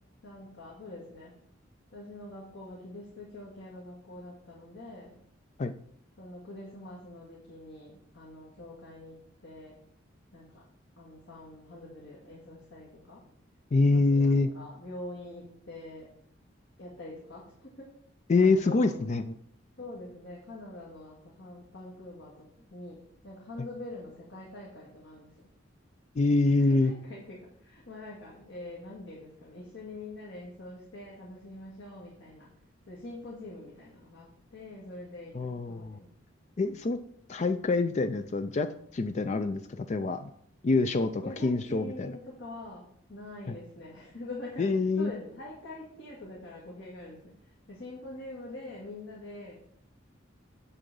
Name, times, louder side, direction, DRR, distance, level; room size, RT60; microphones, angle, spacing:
voice 1, 0.2-1.3 1.9-5.2 6.2-9.8 10.3-10.6 11.0-13.2 13.9-16.1 16.8-17.9 18.4-19.0 19.8-23.0 23.2-25.5 26.6-32.5 32.9-36.1 41.2-49.6, left 2 dB, 70° left, -4 dB, 2.0 m, -45 dB
voice 2, 13.7-14.5 18.3-19.3 26.2-26.9 35.3-36.0 36.6-37.0 37.3-40.3 40.6-42.2 43.5-43.6 44.6-45.1, left 3 dB, 35° left, 9 dB, 0.4 m, -26 dB
9.8 x 3.9 x 6.8 m, 0.67 s
head